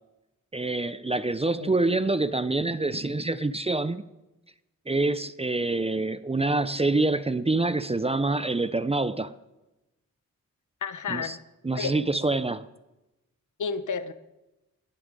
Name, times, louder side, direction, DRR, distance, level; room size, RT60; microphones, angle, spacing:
voice 1, 0.5-4.1 4.9-9.4 11.1-11.4 11.6-12.7, right 2 dB, 20° right, 0.5 m, -26 dB
voice 2, 10.8-11.4 11.7-12.0 13.6-14.1, left 6 dB, 65° left, 1.0 m, -31 dB
20.0 x 10.5 x 5.3 m
wide cardioid pair, 95°, 32 cm